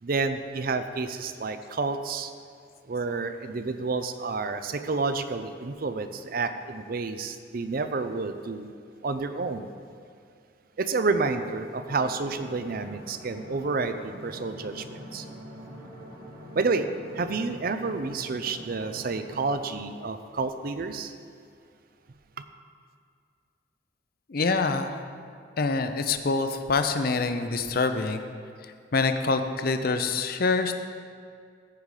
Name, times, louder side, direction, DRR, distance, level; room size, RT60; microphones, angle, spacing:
voice 1, 0.0-2.3 2.9-8.7 9.0-9.7 10.8-14.9 15.1-15.3 16.5-16.9 17.2-21.1, right 4 dB, 50° right, 9 dB, 0.5 m, -29 dB
sound 1, 11.8-19.5, equal, 90° right, 2.3 m, -44 dB
voice 2, 24.3-24.9 25.6-28.2 28.9-30.8, left 4 dB, 50° left, 8 dB, 0.6 m, -25 dB
14.0 x 5.2 x 4.9 m, 2.2 s
head